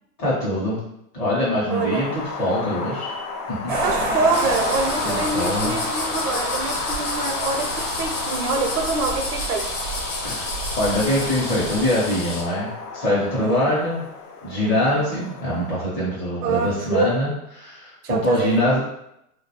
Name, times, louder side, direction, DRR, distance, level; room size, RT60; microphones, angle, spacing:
voice 1, 0.2-0.8 1.1-3.1 3.5-3.7 5.0-5.8 10.2-10.5 10.8-14.0 14.4-18.8, left 1 dB, 20° left, -7 dB, 0.6 m, -23 dB
Wind, 1.7-15.8, left 4 dB, 80° left, 0.6 m, -33 dB
voice 2, 1.7-2.2 3.8-9.8 13.4-13.8 14.6-15.0 16.4-17.2 18.0-18.8, right 3 dB, 80° right, 4 dB, 0.6 m, -26 dB
sound 1, 3.7-11.9, right 2 dB, 35° right, 0.4 m, -30 dB
sound 2, 4.3-12.4, left 2 dB, 50° left, 0.8 m, -31 dB
2.3 x 2.1 x 2.8 m, 0.80 s
hypercardioid pair, 145°, 46 cm